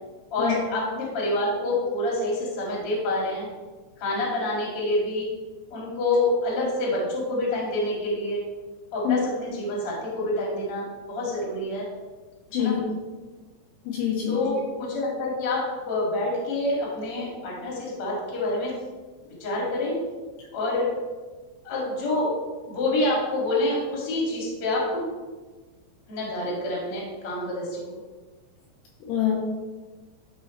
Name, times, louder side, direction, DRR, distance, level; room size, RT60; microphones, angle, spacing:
voice 1, 0.3-3.5 4.0-5.3 5.7-8.4 8.9-11.9 12.6-12.8 14.3-18.7 19.4-20.0 20.5-20.9 21.6-22.3 22.7-25.0 26.1-28.0, left 2 dB, 40° left, -4 dB, 2.4 m, -27 dB
voice 2, 12.5-12.8 13.9-14.4 29.1-29.3, left 9 dB, 70° left, -3 dB, 3.0 m, -24 dB
12.0 x 5.3 x 3.2 m, 1.3 s
omnidirectional pair, 5.4 m